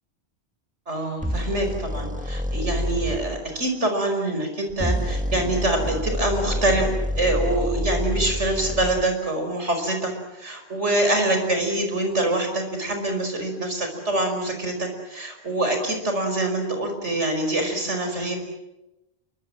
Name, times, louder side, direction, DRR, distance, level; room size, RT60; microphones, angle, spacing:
voice 1, 0.9-18.4, right 1 dB, 90° right, 4 dB, 5.6 m, -25 dB
sound 1, 1.2-3.2 4.7-9.1, equal, 5° right, 1.8 m, -27 dB
29.0 x 24.0 x 7.6 m, 0.95 s
omnidirectional pair, 1.2 m